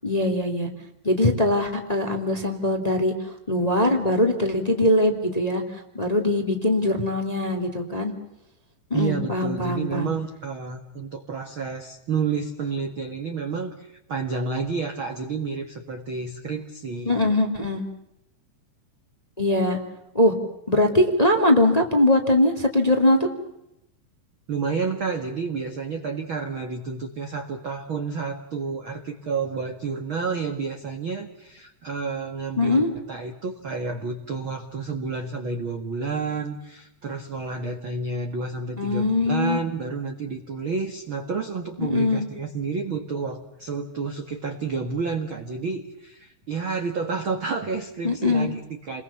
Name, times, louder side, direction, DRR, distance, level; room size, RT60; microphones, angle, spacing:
voice 1, 0.0-0.7 1.0-3.1 3.5-5.6 5.9-8.1 8.9-10.1 17.0-17.8 19.4-19.8 20.1-20.3 20.7-23.3 32.6-32.9 38.8-39.6 41.8-42.2 48.0-48.5, left 1 dB, 10° left, 4 dB, 2.0 m, -21 dB
voice 2, 8.9-17.3 24.5-32.8 33.1-49.0, right 4 dB, 60° right, 5 dB, 1.3 m, -30 dB
30.0 x 22.5 x 7.1 m, 0.83 s
omnidirectional pair, 5.3 m